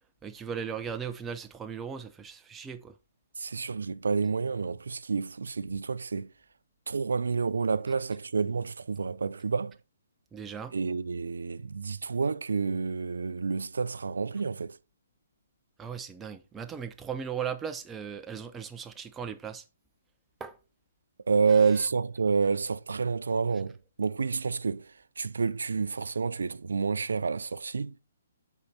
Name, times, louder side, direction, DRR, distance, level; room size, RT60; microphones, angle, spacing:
voice 1, 0.2-2.9 10.3-10.7 15.8-19.6 20.4-20.6 21.5-21.7, right 7 dB, 10° right, 0.7 m, -37 dB
voice 2, 3.4-6.3 6.9-9.7 10.7-14.8 21.3-24.9 25.2-27.9, right 5 dB, 80° right, 0.4 m, -29 dB
7.1 x 4.6 x 4.1 m
hypercardioid pair, 145°, 0 cm